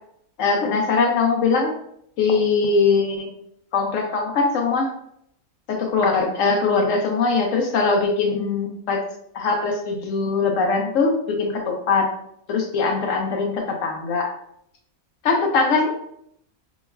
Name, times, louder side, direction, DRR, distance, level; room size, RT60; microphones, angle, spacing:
voice 1, 0.4-1.7 2.2-3.3 3.7-4.9 5.7-9.0 9.3-12.1 12.5-14.3 15.2-15.9, left 4 dB, 70° left, 2 dB, 0.9 m, -21 dB
4.5 x 3.0 x 2.3 m, 0.71 s
omnidirectional pair, 1.5 m